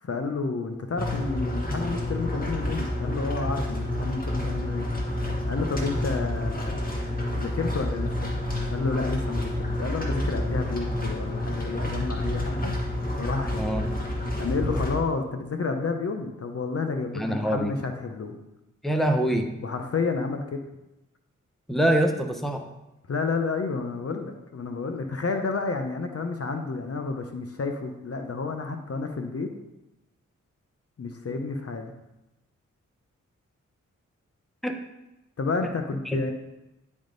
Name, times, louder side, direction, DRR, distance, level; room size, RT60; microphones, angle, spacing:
voice 1, 0.0-4.9 5.5-6.9 7.4-8.3 8.7-12.7 13.2-13.7 14.4-18.4 19.6-20.6 23.1-29.5 31.0-31.9 35.4-36.3, left 4 dB, 50° left, 5 dB, 0.7 m, -30 dB
sound 1, 1.0-15.0, left 1 dB, 25° left, 1.9 m, -29 dB
voice 2, 13.6-13.9 17.1-17.7 18.8-19.5 21.7-22.6 34.6-34.7 36.1-36.2, right 1 dB, ahead, 4 dB, 0.9 m, -24 dB
10.0 x 3.6 x 3.9 m, 0.95 s
cardioid pair, 50°, 31 cm